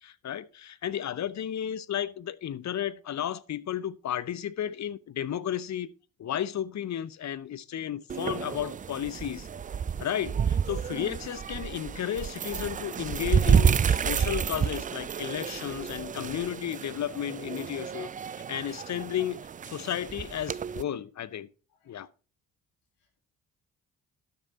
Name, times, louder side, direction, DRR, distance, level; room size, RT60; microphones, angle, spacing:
voice 1, 0.0-5.9 6.2-9.5 10.0-18.1 18.5-21.5 21.9-22.1, left 10 dB, 45° left, 0.7 m, -33 dB
sound 1, 8.1-20.8, right 7 dB, 20° right, 0.3 m, -29 dB
voice 2, 15.4-15.5 21.7-22.0 23.0-23.2, left 5 dB, 80° left, 2.1 m, -70 dB
11.5 x 6.7 x 4.0 m
hypercardioid pair, 45°, 39 cm